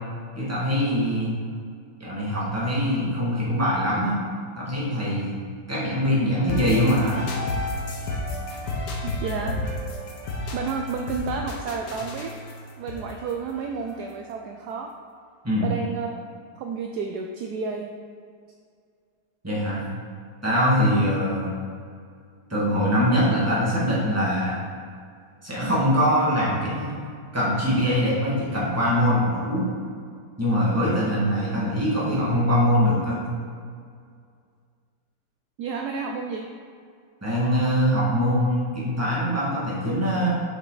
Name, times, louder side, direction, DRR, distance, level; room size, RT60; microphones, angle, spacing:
voice 1, 0.4-1.3 2.0-4.2 4.6-5.4 5.7-7.2 15.4-15.7 19.4-19.8 20.4-21.5 22.5-24.6 25.4-26.9 27.3-29.7 30.4-33.2 37.2-40.3, equal, 10° right, -7 dB, 1.8 m, -23 dB
sound 1, 6.5-14.3, left 2 dB, 70° left, 1.5 m, -32 dB
voice 2, 9.0-9.6 10.5-12.4 12.8-14.9 15.6-16.2 16.6-17.9 35.6-36.5, right 5 dB, 70° right, 3 dB, 1.0 m, -31 dB
7.2 x 5.7 x 4.0 m, 2.2 s
omnidirectional pair, 2.0 m